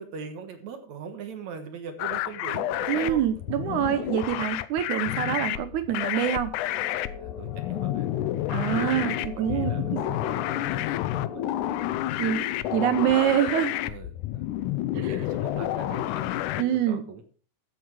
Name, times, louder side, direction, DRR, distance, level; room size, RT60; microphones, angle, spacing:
voice 1, 0.0-3.3 4.3-4.5 7.2-13.1 13.8-14.5 14.9-17.2, right 5 dB, 60° right, 7 dB, 2.3 m, -41 dB
sound 1, 2.0-16.6, left 14 dB, 85° left, 1.7 m, -30 dB
voice 2, 2.9-6.5 8.5-10.0 12.2-13.7 16.6-17.0, right 11 dB, 80° right, 11 dB, 1.8 m, -26 dB
sound 2, 6.7-11.8, left 5 dB, 55° left, 4.1 m, -41 dB
14.0 x 8.1 x 4.7 m, 0.40 s
omnidirectional pair, 4.3 m